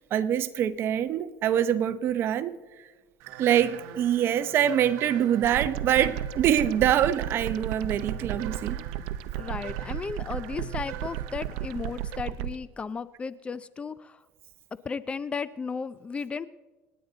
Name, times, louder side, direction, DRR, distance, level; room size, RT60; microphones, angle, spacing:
voice 1, 0.0-2.6 3.4-8.8, right 10 dB, 50° right, 0.8 m, -25 dB
sound 1, 3.2-12.2, right 8 dB, 70° right, 1.1 m, -44 dB
sound 2, 5.4-12.5, right 12 dB, 85° right, 0.6 m, -34 dB
voice 2, 9.4-14.2 14.8-16.5, left 5 dB, 25° left, 0.5 m, -35 dB
28.0 x 9.5 x 3.9 m
cardioid pair, 120°, 5 cm